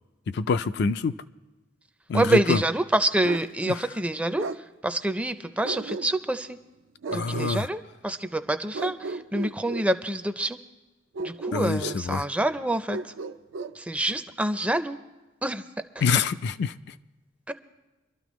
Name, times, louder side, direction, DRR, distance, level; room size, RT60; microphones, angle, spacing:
voice 1, 0.3-1.1 2.1-2.6 3.7-3.9 7.1-7.7 11.5-12.3 16.0-16.7, left 4 dB, 60° left, 11 dB, 0.4 m, -26 dB
voice 2, 2.1-4.4 4.8-6.6 7.1-10.6 11.2-13.0 13.8-15.0 15.4-15.6 17.5-17.6, right 1 dB, 5° right, 10 dB, 0.4 m, -26 dB
Bark, 3.2-3.5 4.4-4.6 5.6-6.4 7.0-7.5 8.7-9.9 11.1-12.0 12.9-13.8, right 3 dB, 75° right, 0.4 m, -34 dB
24.0 x 12.5 x 3.1 m, 1.1 s
head